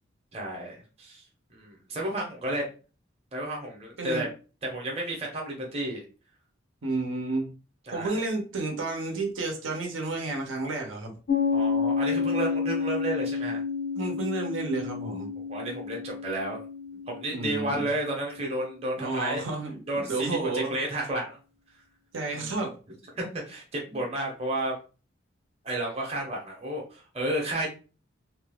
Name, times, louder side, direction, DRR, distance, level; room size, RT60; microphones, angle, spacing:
voice 1, 0.3-1.2 1.5-2.7 3.3-4.3 4.6-6.0 7.9-8.2 11.5-13.6 15.5-16.6 16.9-19.4 19.9-20.3 20.5-21.4 22.3-22.5 23.1-24.8 25.6-27.7, right 1 dB, 30° right, -1 dB, 0.8 m, -32 dB
voice 2, 4.0-4.3 6.8-7.5 7.9-11.1 14.0-15.3 17.3-17.9 19.0-20.8 22.1-22.7 23.9-24.0, right 2 dB, 75° right, 2 dB, 0.8 m, -31 dB
Piano, 11.3-18.5, left 5 dB, 85° left, 0.9 m, -30 dB
2.7 x 2.3 x 3.5 m, 0.35 s
head